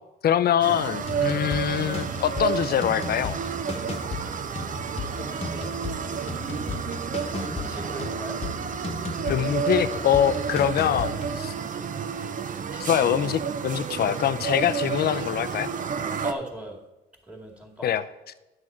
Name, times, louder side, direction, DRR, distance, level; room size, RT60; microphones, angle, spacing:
voice 1, 0.2-3.4 9.3-11.5 12.8-15.7 17.8-18.0, left 9 dB, 50° left, 14 dB, 0.5 m, -24 dB
sound 1, 0.6-16.3, right 7 dB, 40° right, 0.6 m, -31 dB
sound 2, 1.0-11.4, left 4 dB, 30° left, 1.1 m, -36 dB
voice 2, 5.0-5.7 7.4-8.4 12.7-12.9 14.0-14.1 16.2-16.8 17.3-17.9, right 1 dB, 5° right, 0 dB, 2.1 m, -39 dB
9.7 x 6.4 x 4.4 m, 1.0 s
cardioid pair, 90°, 20 cm